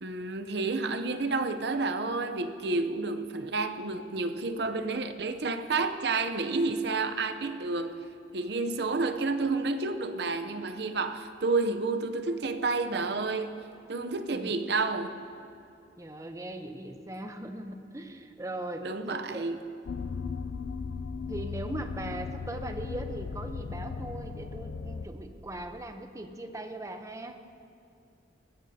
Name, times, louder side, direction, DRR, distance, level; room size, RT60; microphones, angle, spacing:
voice 1, 0.0-8.0 8.3-15.1 18.8-19.6, right 3 dB, 65° right, 0.7 m, -30 dB
voice 2, 16.0-19.5 21.3-27.4, right 1 dB, 20° right, 0.7 m, -39 dB
sound 1, 19.8-25.1, left 5 dB, 90° left, 0.5 m, -36 dB
20.0 x 15.5 x 2.8 m
head